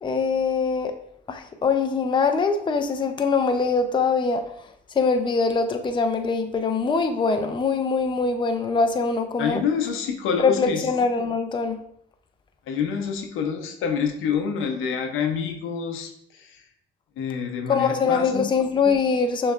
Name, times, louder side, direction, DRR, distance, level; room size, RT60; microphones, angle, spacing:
voice 1, 0.0-0.9 1.3-4.4 5.0-9.6 10.4-11.8 17.7-19.5, left 4 dB, 25° left, 6 dB, 0.5 m, -23 dB
voice 2, 9.4-10.9 12.7-16.6 17.2-18.5, left 6 dB, 85° left, 5 dB, 0.7 m, -27 dB
6.4 x 3.1 x 2.4 m, 0.70 s
cardioid pair, 90°, 20 cm